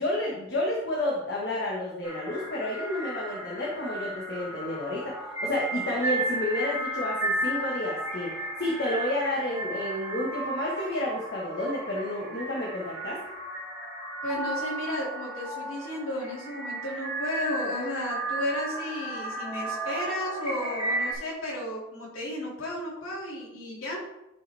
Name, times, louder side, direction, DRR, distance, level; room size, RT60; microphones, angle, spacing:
voice 1, 0.0-13.2, left 1 dB, 55° left, -3 dB, 1.6 m, -30 dB
sound 1, 2.0-21.1, right 1 dB, 10° right, 3.1 m, -34 dB
voice 2, 14.2-24.0, left 1 dB, 90° left, -5 dB, 2.5 m, -33 dB
11.5 x 5.5 x 3.5 m, 0.88 s
head